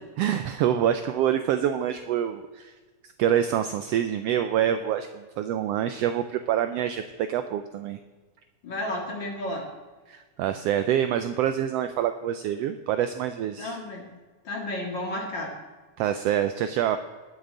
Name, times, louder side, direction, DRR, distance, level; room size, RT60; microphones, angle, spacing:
voice 1, 0.2-2.7 3.2-7.0 7.3-8.0 10.1-13.8 16.0-17.0, right 10 dB, 85° right, 9 dB, 1.4 m, -26 dB
voice 2, 8.6-9.7 13.6-14.1 14.4-15.5, left 1 dB, 40° left, 0 dB, 2.3 m, -32 dB
19.5 x 7.5 x 3.8 m, 1.4 s
omnidirectional pair, 3.4 m